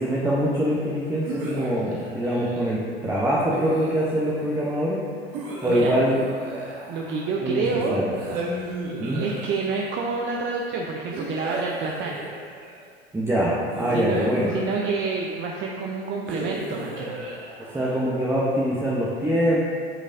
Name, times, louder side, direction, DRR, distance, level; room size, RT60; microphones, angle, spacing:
voice 1, 0.0-5.0 5.6-6.2 7.4-7.6 7.9-8.1 9.0-9.2 13.1-14.5 17.7-19.7, equal, 10° right, -6 dB, 0.9 m, -24 dB
sound 1, 1.2-2.8 3.5-4.4 5.3-7.5 8.1-10.0 11.1-12.9 13.7-15.3 16.3-18.2, right 2 dB, 60° right, 1.4 m, -35 dB
voice 2, 5.7-6.0 6.9-8.0 8.6-8.7 9.2-12.2 13.9-17.2, right 4 dB, 40° right, -1 dB, 0.7 m, -28 dB
8.7 x 5.1 x 2.7 m, 2.1 s
hypercardioid pair, 85°, 32 cm